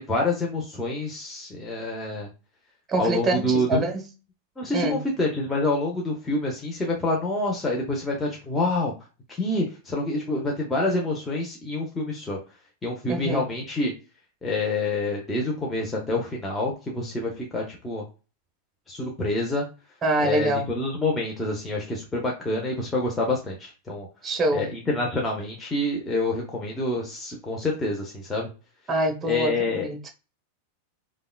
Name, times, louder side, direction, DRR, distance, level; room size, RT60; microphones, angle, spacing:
voice 1, 0.0-2.3 3.0-3.8 4.6-8.9 9.4-12.4 12.8-13.9 14.4-18.0 18.9-19.7 20.2-24.1 24.5-28.5 29.2-29.9, left 2 dB, 10° left, 0.9 m, -27 dB
voice 2, 2.9-4.1 4.7-5.0 13.1-13.5 20.0-20.7 24.2-24.7 28.9-30.1, right 1 dB, 20° right, 1.0 m, -25 dB
5.1 x 2.3 x 2.3 m
figure-of-eight pair, 90°, 0 cm